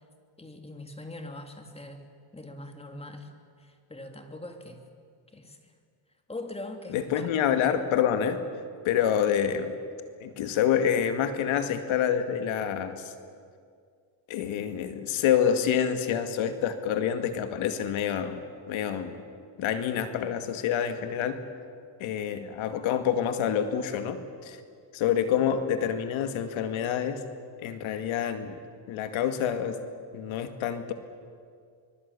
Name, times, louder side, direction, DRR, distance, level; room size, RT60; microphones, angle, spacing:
voice 1, 0.4-2.1 2.3-4.8 5.3-5.7 6.3-7.4, left 2 dB, 10° left, 5 dB, 2.6 m, -42 dB
voice 2, 6.9-8.4 8.8-9.8 10.2-13.1 14.3-18.4 18.7-19.2 19.6-21.4 22.0-24.6 24.9-27.2 27.6-28.6 28.9-29.8 30.1-30.9, left 9 dB, 70° left, 8 dB, 2.3 m, -27 dB
24.5 x 22.5 x 8.4 m, 2.2 s
cardioid pair, 115°, 50 cm